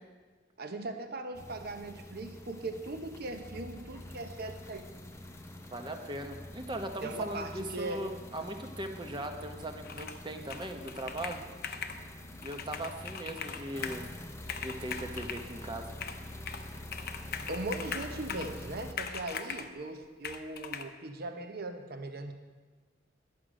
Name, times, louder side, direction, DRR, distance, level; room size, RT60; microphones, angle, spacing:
voice 1, 0.6-4.9 7.0-8.0 17.5-22.3, right 2 dB, 55° right, 6 dB, 0.9 m, -39 dB
sound 1, 1.3-18.9, left 1 dB, 15° left, 0.6 m, -46 dB
voice 2, 5.7-11.4 12.4-14.0 14.6-15.9, right 1 dB, 25° right, 5 dB, 0.9 m, -39 dB
Computer keyboard, 9.8-10.2 10.5-12.0 12.4-14.0 14.4-15.5 16.0-16.7 16.9-18.6 19.0-19.7 20.2-20.8, left 7 dB, 55° left, 0.7 m, -40 dB
11.5 x 7.7 x 5.0 m, 1.4 s
head